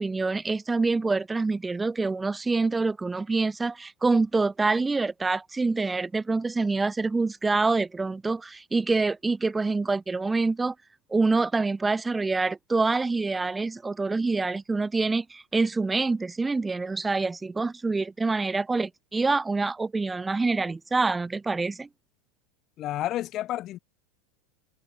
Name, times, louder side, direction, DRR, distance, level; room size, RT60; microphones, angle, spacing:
voice 1, 0.0-10.7 11.1-21.9, right 3 dB, 10° right, 2.0 m, -26 dB
voice 2, 22.8-23.8, left 14 dB, 30° left, 2.0 m, -30 dB
supercardioid pair, 170°, 0 cm